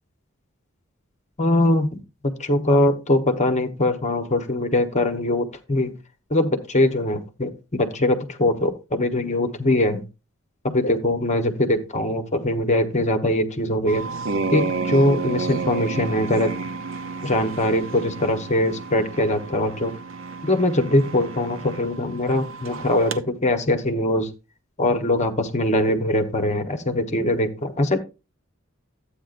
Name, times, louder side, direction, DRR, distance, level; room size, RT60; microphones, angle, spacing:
voice 1, 1.4-5.9 6.3-10.0 10.6-14.0 14.5-16.5 17.2-19.9 20.4-24.3 24.8-28.0, left 1 dB, 35° left, 6 dB, 1.2 m, -22 dB
sound 1, 13.9-23.2, right 4 dB, 70° right, 0.8 m, -31 dB
13.5 x 8.8 x 2.6 m, 0.29 s
head